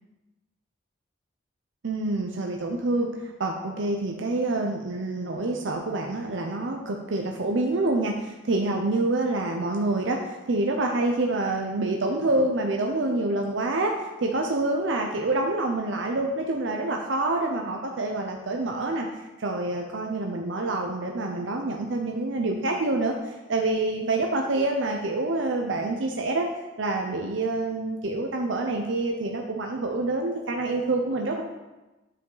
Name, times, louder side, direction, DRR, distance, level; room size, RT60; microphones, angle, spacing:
voice 1, 1.8-13.9 14.2-19.1 19.4-26.5 26.8-31.4, right 2 dB, 80° right, 2 dB, 0.6 m, -27 dB
8.9 x 4.8 x 3.9 m, 1.1 s
head